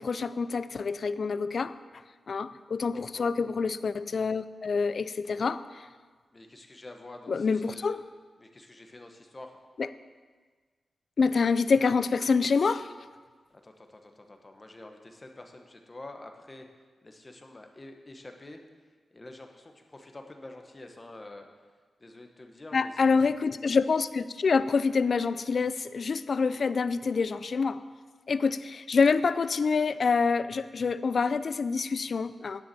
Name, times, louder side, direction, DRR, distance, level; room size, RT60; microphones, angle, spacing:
voice 1, 0.0-1.8 2.3-5.6 7.3-8.0 9.8-9.9 11.2-12.9 22.7-27.8 28.3-32.6, left 5 dB, 55° left, 14 dB, 0.4 m, -26 dB
voice 2, 2.9-3.3 5.2-5.6 6.3-8.0 8.4-9.6 13.5-16.7 17.0-18.6 19.1-21.5 22.0-23.2, left 2 dB, 25° left, 4 dB, 1.0 m, -47 dB
10.5 x 7.1 x 7.6 m, 1.4 s
wide cardioid pair, 155°, 0 cm